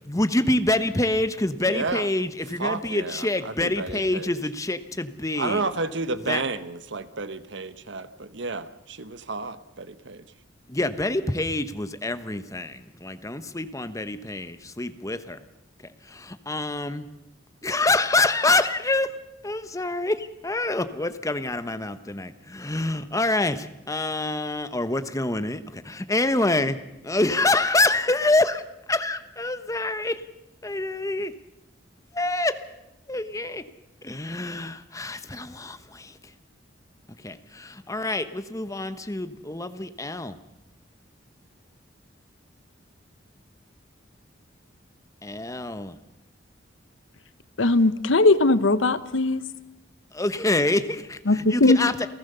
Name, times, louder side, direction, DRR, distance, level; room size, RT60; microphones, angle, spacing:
voice 1, 0.0-5.6 6.3-6.4 10.7-15.4 16.1-17.1 17.6-19.1 19.4-26.8 27.0-28.6 28.9-30.2 30.6-31.3 32.1-32.6 33.1-33.6 34.0-36.2 37.2-40.4 45.2-46.0 50.1-52.1, left 2 dB, 15° left, 1.1 m, -26 dB
voice 2, 1.6-2.1 2.6-4.4 5.3-10.2, right 3 dB, 70° right, 1.1 m, -31 dB
voice 3, 47.6-49.4 51.3-51.8, left 2 dB, 90° left, 1.0 m, -19 dB
28.5 x 15.5 x 6.8 m
head